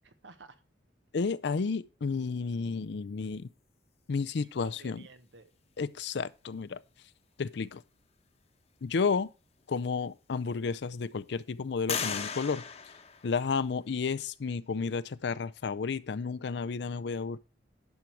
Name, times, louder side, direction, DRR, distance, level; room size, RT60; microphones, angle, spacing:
voice 1, 0.0-0.6 2.6-3.1 4.4-5.5, right 3 dB, 70° right, 1.1 m, -54 dB
voice 2, 1.1-3.5 4.1-5.0 5.8-6.8 7.4-7.8 8.8-9.3 9.7-12.6 13.2-17.4, left 5 dB, 65° left, 0.5 m, -32 dB
sound 1, 9.6-9.7 10.3-11.0 11.9-13.8, left 6 dB, 35° left, 1.0 m, -37 dB
11.0 x 6.3 x 4.5 m
head